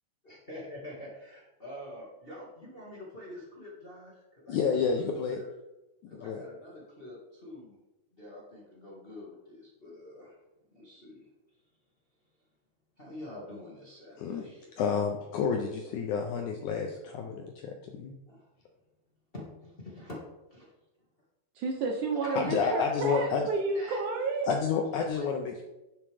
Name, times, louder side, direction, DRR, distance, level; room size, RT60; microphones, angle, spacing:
voice 1, 0.2-4.7 5.3-5.5 6.1-7.8 8.1-10.4 10.7-11.6 13.0-14.8 18.3-18.5 19.3-20.2 20.5-20.7 22.1-23.4 23.7-24.0 25.1-25.3, left 1 dB, 30° left, -5 dB, 1.1 m, -46 dB
voice 2, 4.5-5.4 6.2-6.5 14.2-14.4 14.8-18.1 22.4-23.5 24.5-25.6, left 6 dB, 75° left, 2 dB, 1.8 m, -30 dB
voice 3, 21.6-24.5, right 3 dB, 75° right, 1 dB, 1.9 m, -31 dB
10.5 x 7.1 x 3.4 m, 1.0 s
omnidirectional pair, 4.2 m